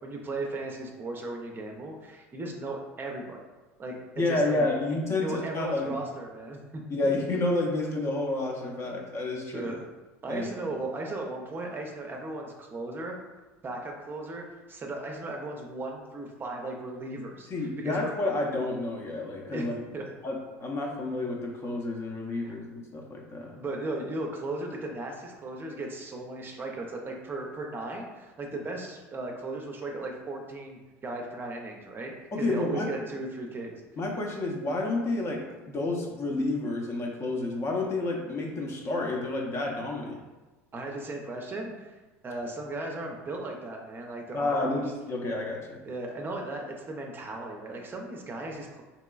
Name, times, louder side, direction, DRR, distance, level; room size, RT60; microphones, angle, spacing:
voice 1, 0.0-3.4 3.8-4.0 4.3-5.0 5.2-7.1 8.9-9.0 9.5-9.8 10.2-13.2 13.6-18.1 19.5-19.7 19.9-20.1 22.4-22.5 23.6-33.8 40.7-41.9 42.2-44.9 45.8-48.8, right 2 dB, 30° right, 1 dB, 0.5 m, -36 dB
voice 2, 4.2-6.0 6.9-9.7 10.3-10.5 17.5-19.7 20.2-23.6 32.3-32.9 34.0-40.2 44.3-45.8, left 2 dB, 40° left, 0 dB, 0.6 m, -30 dB
3.0 x 2.9 x 2.3 m, 1.2 s
hypercardioid pair, 80°, 7 cm